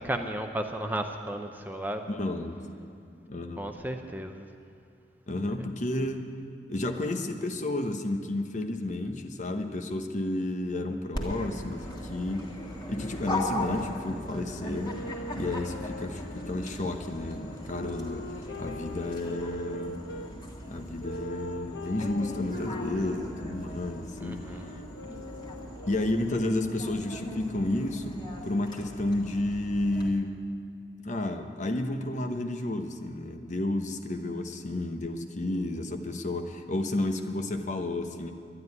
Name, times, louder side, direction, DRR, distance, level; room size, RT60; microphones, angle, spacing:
voice 1, 0.0-2.0 3.6-4.5 24.2-24.7, right 1 dB, 10° right, 5 dB, 0.7 m, -34 dB
voice 2, 2.1-2.6 3.3-3.7 5.3-6.3 6.7-12.6 12.9-15.0 15.3-18.3 18.6-20.0 20.7-24.4 25.9-30.4 31.0-38.3, left 1 dB, 45° left, 6 dB, 0.9 m, -31 dB
Dog, 11.1-30.1, left 1 dB, 25° left, 1.9 m, -39 dB
sound 1, 14.7-20.3 21.0-26.5, left 1 dB, 80° left, 1.1 m, -41 dB
12.0 x 11.0 x 9.5 m, 2.4 s
head